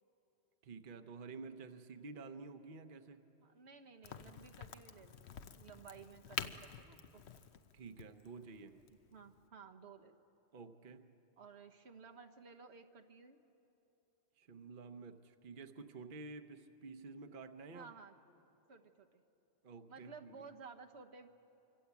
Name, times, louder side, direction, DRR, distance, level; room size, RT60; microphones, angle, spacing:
voice 1, 0.6-3.2 7.7-8.8 10.5-11.1 14.4-17.9 19.6-20.4, right 4 dB, 55° right, 8 dB, 1.0 m, -51 dB
voice 2, 3.4-7.2 9.1-10.2 11.4-13.4 17.7-18.2 18.7-19.2 19.9-21.3, right 5 dB, 85° right, 5 dB, 1.5 m, -55 dB
Crack, 4.0-9.5, left 7 dB, 85° left, 1.1 m, -48 dB
25.5 x 24.5 x 8.3 m, 2.9 s
omnidirectional pair, 1.1 m